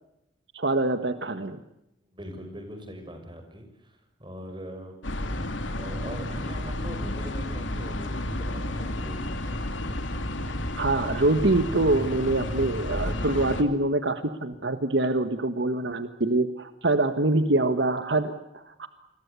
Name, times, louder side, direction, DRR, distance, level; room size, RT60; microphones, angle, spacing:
voice 1, 0.5-1.6 10.8-18.9, right 2 dB, 70° right, 9 dB, 1.5 m, -25 dB
voice 2, 2.1-5.0 5.7-9.3, equal, 25° right, 6 dB, 6.2 m, -41 dB
sound 1, 5.0-13.6, left 1 dB, 85° left, 2.9 m, -31 dB
29.5 x 22.5 x 8.3 m, 0.85 s
head